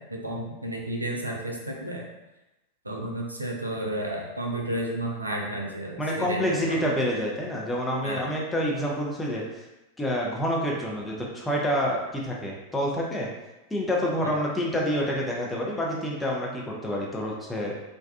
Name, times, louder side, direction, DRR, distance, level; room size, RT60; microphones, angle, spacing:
voice 1, 0.0-2.1 2.8-6.9 8.0-8.3 14.2-14.4, right 1 dB, 85° right, 0 dB, 0.4 m, -32 dB
voice 2, 6.0-9.6 10.0-13.3 13.7-17.7, equal, 10° left, -3 dB, 0.5 m, -28 dB
2.5 x 2.2 x 2.3 m, 1.0 s
figure-of-eight pair, 90°, 0 cm